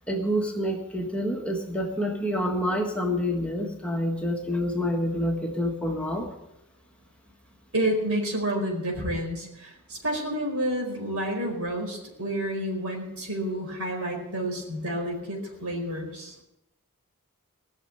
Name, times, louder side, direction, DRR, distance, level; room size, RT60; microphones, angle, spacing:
voice 1, 0.1-6.3, equal, 5° left, 0 dB, 1.6 m, -27 dB
voice 2, 7.7-16.3, right 1 dB, 70° right, 0 dB, 4.8 m, -29 dB
18.5 x 6.7 x 8.6 m, 0.89 s
head